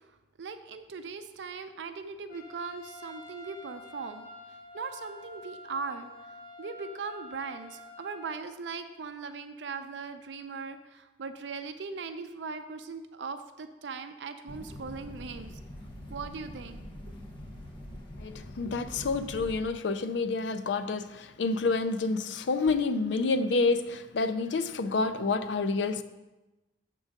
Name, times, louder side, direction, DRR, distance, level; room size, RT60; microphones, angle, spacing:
voice 1, 0.4-4.3 4.7-6.1 6.6-15.5 16.1-16.8, right 4 dB, 80° right, 9 dB, 0.5 m, -39 dB
Trumpet, 2.3-8.4, left 2 dB, 50° left, 0.8 m, -48 dB
sound 1, 14.5-19.6, left 1 dB, 25° left, 1.1 m, -44 dB
voice 2, 18.2-26.0, left 3 dB, 80° left, 11 dB, 0.5 m, -28 dB
7.2 x 3.8 x 6.4 m, 1.1 s
head